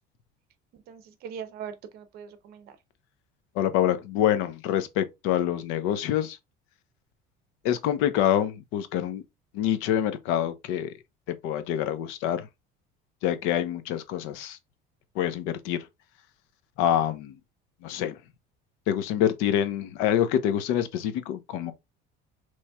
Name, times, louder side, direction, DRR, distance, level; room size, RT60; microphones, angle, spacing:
voice 1, 0.7-2.8, right 7 dB, 50° right, 0.7 m, -41 dB
voice 2, 3.5-6.4 7.6-9.2 9.5-10.9 11.3-12.5 13.2-14.6 15.1-15.9 16.8-17.4 17.8-18.2 18.9-21.7, left 10 dB, 80° left, 0.6 m, -26 dB
4.2 x 3.1 x 2.2 m
cardioid pair, 165°, 20 cm